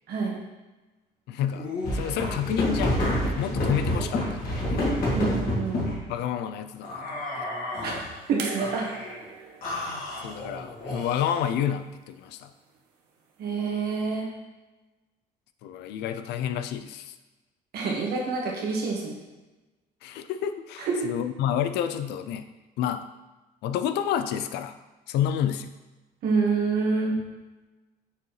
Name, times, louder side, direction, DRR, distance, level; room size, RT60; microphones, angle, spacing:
voice 1, 1.3-4.9 6.1-7.5 10.2-12.5 15.6-17.2 20.0-22.5 22.8-23.1 23.6-24.8 25.1-25.7, left 9 dB, 80° left, 10 dB, 0.5 m, -29 dB
sound 1, 1.5-6.0 6.8-8.1 8.6-9.2 9.6-11.4, left 1 dB, 55° left, 2.1 m, -29 dB
voice 2, 5.1-5.8 7.8-8.0 8.3-8.9 13.4-14.3 17.7-19.1 20.8-21.1 26.2-27.2, right 4 dB, 70° right, -2 dB, 1.6 m, -27 dB
sound 2, 8.4-11.5 12.7-12.8, right 4 dB, 90° right, 1.0 m, -41 dB
6.7 x 4.6 x 3.2 m, 1.1 s
cardioid pair, 110°, 17 cm